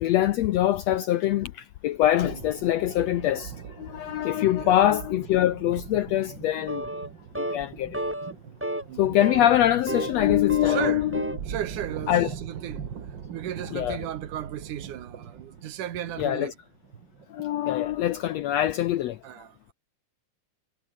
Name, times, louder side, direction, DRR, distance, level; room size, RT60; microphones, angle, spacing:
voice 1, 0.0-6.9 7.4-8.0 9.0-11.2 12.1-12.3 13.7-14.0 16.2-16.5 17.3-19.2, left 12 dB, 80° left, 1.5 m, -24 dB
sound 1, 2.2-18.4, right 7 dB, 40° right, 1.9 m, -41 dB
sound 2, 6.7-7.1 7.3-7.6 7.9-8.3 8.6-8.8 9.2-10.2 10.5-11.4, right 1 dB, 10° right, 0.8 m, -31 dB
voice 2, 8.9-9.2 10.7-11.0 11.5-16.5 19.2-19.7, right 11 dB, 70° right, 2.9 m, -35 dB
omnidirectional pair, 3.8 m